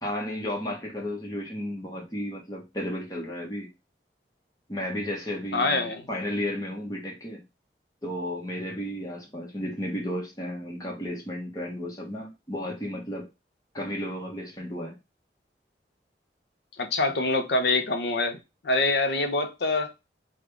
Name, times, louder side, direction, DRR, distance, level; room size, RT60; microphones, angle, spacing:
voice 1, 0.0-3.7 4.7-7.4 8.0-13.3 13.7-15.0, left 1 dB, 20° left, 1.1 m, -33 dB
voice 2, 5.5-6.1 16.8-18.4 18.6-19.9, left 2 dB, 70° left, 0.7 m, -25 dB
3.7 x 2.4 x 3.3 m
head